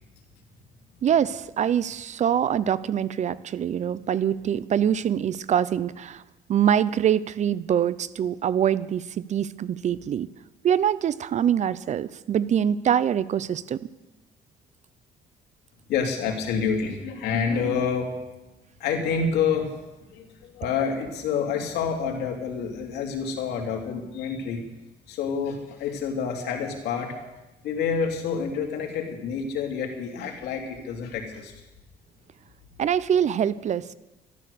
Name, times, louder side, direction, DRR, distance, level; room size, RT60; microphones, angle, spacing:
voice 1, 1.0-6.2 6.5-10.3 10.6-13.8 32.8-33.8, right 9 dB, 45° right, 18 dB, 0.6 m, -24 dB
voice 2, 15.9-18.1 18.8-19.7 20.1-24.6 25.1-27.2 27.6-31.5, left 6 dB, 75° left, 1 dB, 3.0 m, -28 dB
13.0 x 12.5 x 6.8 m, 1.0 s
cardioid pair, 110°, 17 cm